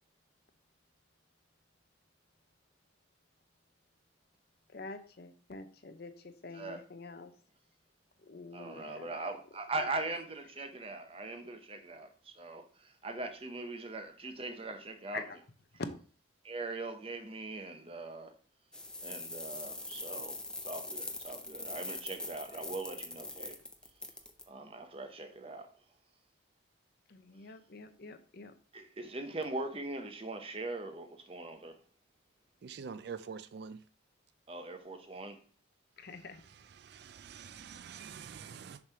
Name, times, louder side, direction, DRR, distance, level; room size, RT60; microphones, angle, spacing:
voice 1, 4.7-7.3 8.2-9.4 9.8-10.1 15.1-15.4 27.1-28.5 36.0-36.4, left 4 dB, 50° left, 0.6 m, -47 dB
voice 2, 8.5-15.2 16.4-18.3 19.0-23.6 24.5-25.7 28.7-31.7 34.5-35.4, right 2 dB, 30° right, 0.7 m, -41 dB
sound 1, 18.7-24.4, left 2 dB, 5° left, 0.5 m, -42 dB
voice 3, 32.6-33.8 36.8-38.8, right 6 dB, 55° right, 0.3 m, -45 dB
6.9 x 3.2 x 5.5 m
head